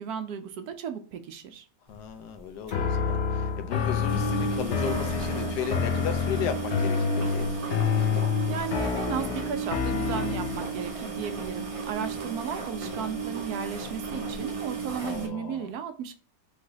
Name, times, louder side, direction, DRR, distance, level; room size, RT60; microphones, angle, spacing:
voice 1, 0.0-1.7 8.1-16.1, right 7 dB, 75° right, 1.0 m, -35 dB
voice 2, 1.9-7.5 15.0-15.7, left 8 dB, 80° left, 1.2 m, -35 dB
sound 1, 1.9-2.1 2.3-2.4 2.7-2.8 3.1-3.2 3.7-15.3, right 4 dB, 55° right, 0.3 m, -34 dB
sound 2, 2.7-10.8, left 6 dB, 65° left, 0.7 m, -28 dB
3.3 x 3.1 x 3.8 m
omnidirectional pair, 1.8 m